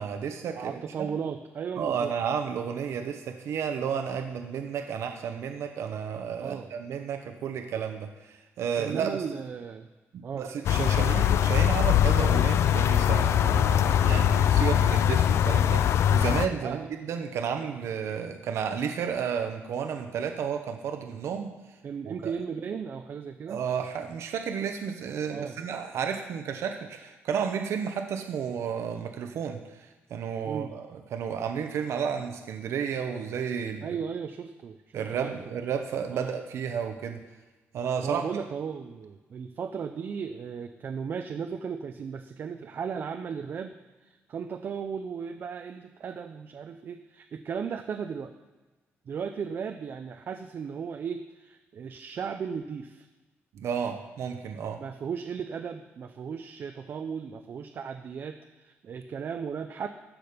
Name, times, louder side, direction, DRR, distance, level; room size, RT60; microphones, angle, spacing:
voice 1, 0.0-1.1 1.8-9.2 10.1-21.5 22.1-22.3 23.5-33.9 34.9-37.2 37.7-38.2 53.5-54.8, right 7 dB, 70° right, 6 dB, 0.9 m, -32 dB
voice 2, 0.6-2.1 6.4-6.7 8.8-9.9 10.2-10.5 10.9-11.1 16.6-16.9 21.8-23.6 25.3-25.6 30.4-30.7 33.8-35.3 36.1-36.3 38.0-43.7 44.0-48.3 49.1-53.1 54.8-59.9, right 6 dB, 50° right, 6 dB, 0.5 m, -36 dB
sound 1, 10.6-16.5, left 10 dB, 70° left, 0.4 m, -22 dB
13.5 x 6.2 x 5.1 m, 1.2 s
cardioid pair, 140°, 5 cm